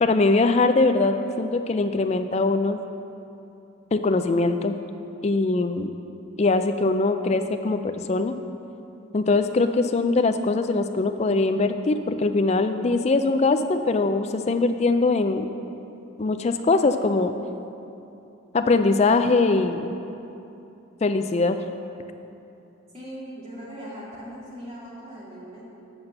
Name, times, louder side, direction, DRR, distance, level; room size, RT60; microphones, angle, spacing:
voice 1, 0.0-2.8 3.9-4.7 5.2-5.9 6.4-8.3 9.1-15.5 16.2-17.3 18.5-19.9 21.0-21.6, left 3 dB, 30° left, 8 dB, 0.3 m, -22 dB
voice 2, 22.9-25.6, equal, 30° right, -7 dB, 2.2 m, -39 dB
7.8 x 5.8 x 6.5 m, 2.8 s
head